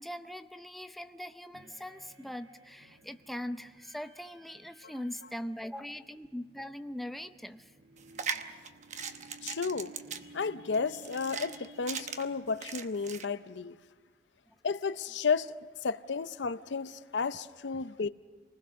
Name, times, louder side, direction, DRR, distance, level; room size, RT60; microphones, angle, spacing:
voice 1, 0.0-7.7 14.5-14.6, left 1 dB, ahead, 0.6 m, -41 dB
sound 1, 1.5-13.6, right 3 dB, 80° right, 1.5 m, -57 dB
sound 2, 8.0-13.2, right 6 dB, 40° right, 1.0 m, -39 dB
voice 2, 9.4-9.9 10.3-13.8 14.6-15.5 15.8-18.1, left 5 dB, 80° left, 0.6 m, -32 dB
28.0 x 20.0 x 6.3 m
head